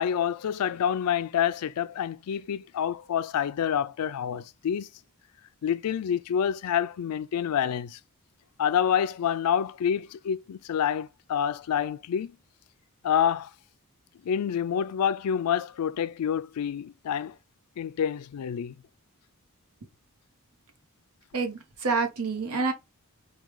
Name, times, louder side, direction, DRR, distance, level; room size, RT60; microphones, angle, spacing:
voice 1, 0.0-4.9 5.6-8.0 8.6-12.4 13.0-13.5 14.2-17.3 17.8-18.8, left 8 dB, 90° left, 0.4 m, -27 dB
voice 2, 21.3-22.7, right 4 dB, 80° right, 0.9 m, -28 dB
4.7 x 2.3 x 3.0 m
head